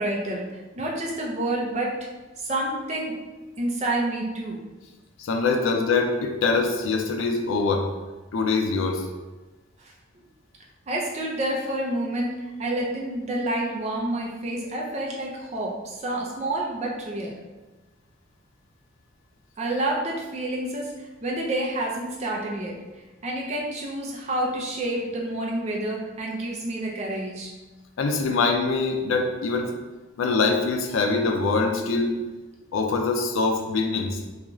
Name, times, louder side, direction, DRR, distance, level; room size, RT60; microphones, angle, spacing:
voice 1, 0.0-2.1 2.4-3.1 3.6-4.6 9.8-9.9 10.9-17.4 19.6-22.8 23.2-27.5, right 1 dB, 35° right, -2 dB, 0.4 m, -29 dB
voice 2, 5.2-7.9 8.3-9.0 28.0-29.7 30.2-32.1 32.7-34.2, left 4 dB, 80° left, 4 dB, 0.4 m, -23 dB
2.4 x 2.3 x 3.0 m, 1.2 s
head